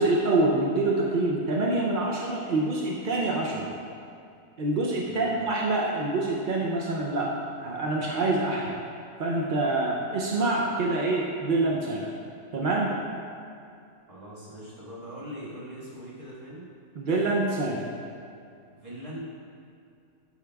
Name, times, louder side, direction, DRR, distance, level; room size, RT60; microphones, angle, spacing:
voice 1, 0.0-3.7 4.6-8.7 9.2-12.1 12.5-13.0 17.0-17.9, right 2 dB, 60° right, -2 dB, 0.5 m, -26 dB
voice 2, 5.0-5.4 14.1-16.7 18.8-19.2, equal, 25° right, -8 dB, 1.6 m, -41 dB
8.3 x 6.4 x 2.3 m, 2.5 s
omnidirectional pair, 1.5 m